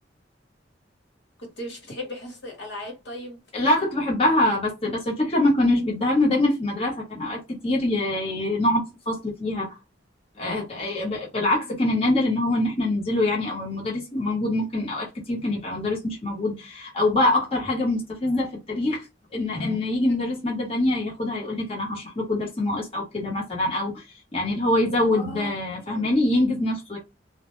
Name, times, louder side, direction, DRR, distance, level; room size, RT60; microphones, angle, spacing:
voice 1, 1.4-3.4 4.4-4.6 11.7-11.8 20.1-20.2 25.1-26.0, left 1 dB, 70° left, 1.1 m, -37 dB
voice 2, 3.5-9.7 10.4-19.1 19.3-24.0 24.3-27.0, left 1 dB, 35° left, 0.9 m, -24 dB
2.1 x 2.1 x 3.0 m
head